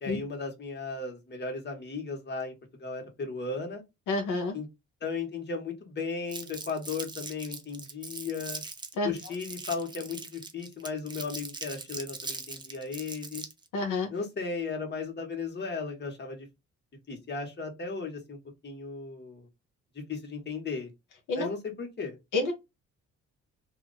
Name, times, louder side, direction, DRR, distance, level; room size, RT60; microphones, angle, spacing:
voice 1, 0.0-2.5 2.8-3.8 4.5-4.7 5.0-8.6 9.0-13.4 14.1-16.5 17.1-18.4 18.6-19.5 20.1-20.9 21.4-22.2, left 4 dB, 35° left, 1.5 m, -36 dB
voice 2, 4.1-4.6 8.9-9.1 13.7-14.1 21.3-21.5 22.3-22.5, left 2 dB, 80° left, 1.0 m, -28 dB
Crumpling crinkling, 6.3-13.7, right 3 dB, 15° right, 0.6 m, -40 dB
2.8 x 2.5 x 3.9 m
cardioid pair, 90°, 30 cm